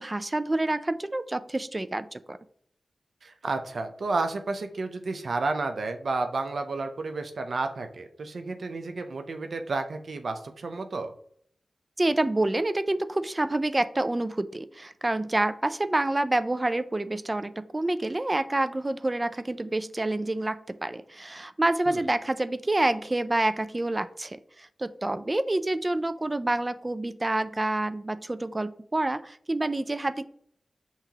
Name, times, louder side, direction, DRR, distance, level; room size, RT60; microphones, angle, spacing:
voice 1, 0.0-2.4 12.0-30.2, right 2 dB, 25° right, 13 dB, 0.3 m, -28 dB
voice 2, 3.2-11.1 21.9-22.1, right 3 dB, 70° right, 7 dB, 0.6 m, -31 dB
5.8 x 2.9 x 2.8 m, 0.64 s
wide cardioid pair, 70°, 0 cm